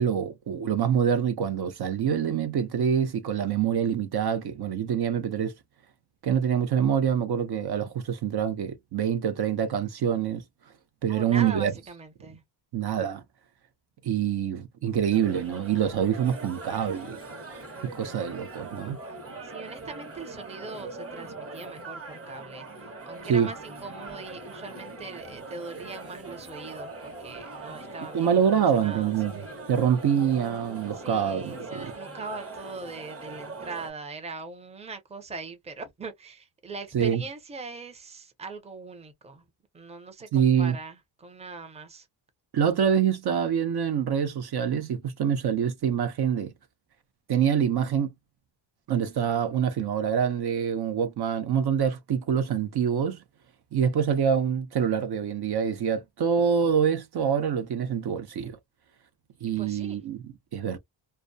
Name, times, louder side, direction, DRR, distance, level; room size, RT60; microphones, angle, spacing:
voice 1, 0.0-5.5 6.2-10.4 11.0-11.7 12.7-13.2 14.0-17.2 17.8-19.0 23.3-23.5 28.1-29.3 29.7-31.9 36.9-37.2 40.3-40.8 42.5-46.5 47.3-48.1 48.9-53.2 53.7-58.6 59.4-60.8, right 8 dB, 55° right, 0.6 m, -25 dB
voice 2, 11.1-12.4 19.4-29.1 30.9-39.4 39.7-42.1 59.6-60.0, right 4 dB, 15° right, 0.6 m, -41 dB
sound 1, 15.1-33.9, right 2 dB, 30° right, 0.9 m, -41 dB
2.2 x 2.2 x 2.5 m
cardioid pair, 110°, 47 cm